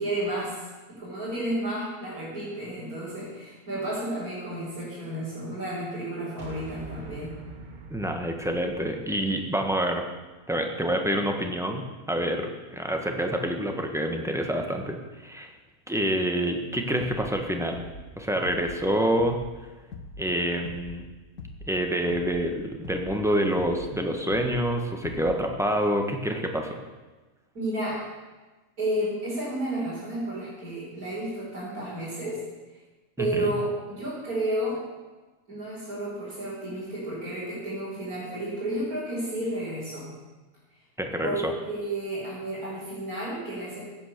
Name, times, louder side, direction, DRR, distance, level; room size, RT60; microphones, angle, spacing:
voice 1, 0.0-7.4 27.5-28.0 28.8-32.4 33.2-34.8 35.5-40.1 41.2-43.8, right 1 dB, 85° right, -9 dB, 5.4 m, -32 dB
sound 1, 6.4-10.8, right 3 dB, 35° right, 1.3 m, -46 dB
voice 2, 7.9-10.0 10.5-15.5 15.9-17.8 18.2-19.4 20.2-21.0 21.7-26.8 33.2-33.5 41.0-41.5, equal, ahead, 3 dB, 1.4 m, -27 dB
sound 2, 17.0-17.4 17.7-18.1 18.4-18.8 19.2-19.6 19.9-20.3 20.6-21.0 21.4-21.8 22.1-22.5 22.8-23.2 23.6-23.9 24.3-24.7 25.0-25.4, left 3 dB, 90° left, 1.7 m, -41 dB
16.0 x 8.9 x 6.8 m, 1.2 s
omnidirectional pair, 1.5 m